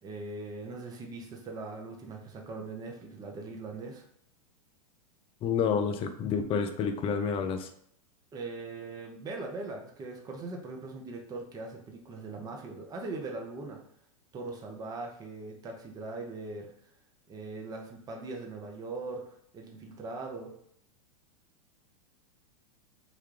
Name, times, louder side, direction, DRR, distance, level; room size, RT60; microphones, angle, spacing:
voice 1, 0.0-4.0 8.3-13.8 14.3-16.7 17.3-20.5, right 3 dB, 20° right, 1 dB, 0.6 m, -40 dB
voice 2, 5.4-7.7, left 6 dB, 30° left, 7 dB, 0.4 m, -29 dB
3.7 x 2.2 x 3.2 m, 0.68 s
hypercardioid pair, 110°, 19 cm